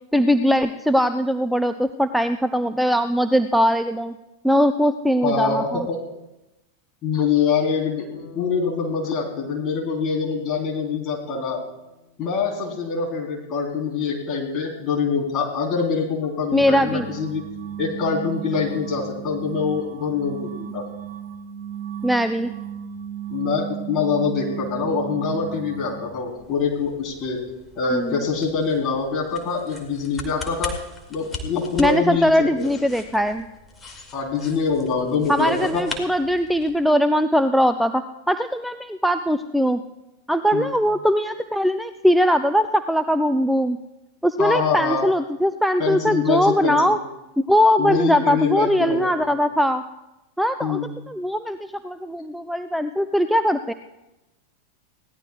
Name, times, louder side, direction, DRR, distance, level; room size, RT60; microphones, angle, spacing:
voice 1, 0.1-4.2 4.4-5.9 16.5-17.1 22.0-22.5 27.9-28.2 31.8-33.4 35.3-39.8 40.3-43.8 44.2-47.0 47.4-49.8 50.4-50.8 51.1-53.7, equal, ahead, 11 dB, 0.5 m, -20 dB
voice 2, 5.2-6.0 7.0-11.6 12.2-17.4 17.8-20.8 23.3-27.4 27.8-30.7 31.1-32.7 34.1-35.8 40.5-40.7 44.4-45.0 45.8-47.0 47.8-49.1 50.6-50.9, left 5 dB, 30° left, 0 dB, 3.5 m, -24 dB
Bass guitar, 8.1-12.5, left 4 dB, 65° left, 5.8 m, -46 dB
sound 1, 16.5-26.2, right 8 dB, 45° right, 0.9 m, -34 dB
sound 2, 26.0-36.8, left 3 dB, 15° left, 2.1 m, -39 dB
21.5 x 17.0 x 2.3 m, 0.97 s
figure-of-eight pair, 90°, 0 cm